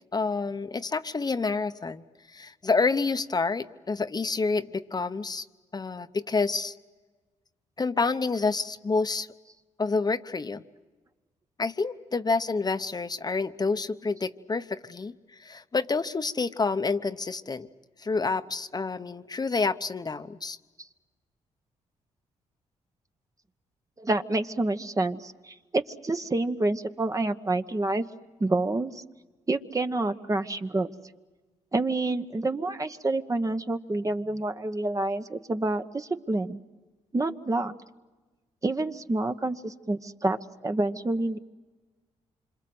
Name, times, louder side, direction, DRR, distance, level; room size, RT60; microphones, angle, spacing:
voice 1, 0.1-2.0 2.3-5.4 5.7-6.7 7.8-9.3 9.8-10.6 11.6-15.1 15.4-17.7 18.0-20.6, left 4 dB, 30° left, 9 dB, 1.0 m, -28 dB
voice 2, 24.0-28.0 28.4-29.0 29.5-30.9 31.7-36.6 37.1-37.7 38.6-41.4, right 2 dB, 25° right, 8 dB, 1.1 m, -28 dB
27.0 x 26.0 x 7.8 m, 1.3 s
cardioid pair, 65°, 13 cm